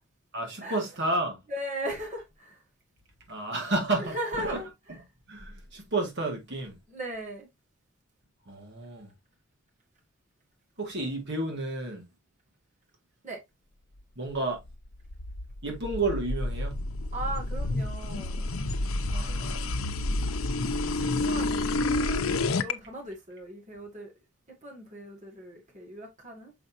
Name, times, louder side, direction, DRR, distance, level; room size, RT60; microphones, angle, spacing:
voice 1, 0.3-1.4 3.3-4.6 5.3-6.8 8.5-9.1 10.8-12.0 14.2-14.6 15.6-16.8 19.1-19.8, right 2 dB, 55° right, 2.0 m, -31 dB
voice 2, 1.5-2.6 4.0-4.7 6.9-7.5 13.2-13.4 17.1-18.5 19.2-19.4 20.0-20.2 21.1-24.1 24.6-26.5, right 1 dB, 35° right, 2.1 m, -38 dB
sound 1, 14.7-22.7, left 2 dB, 80° left, 0.7 m, -29 dB
6.9 x 5.3 x 2.7 m
head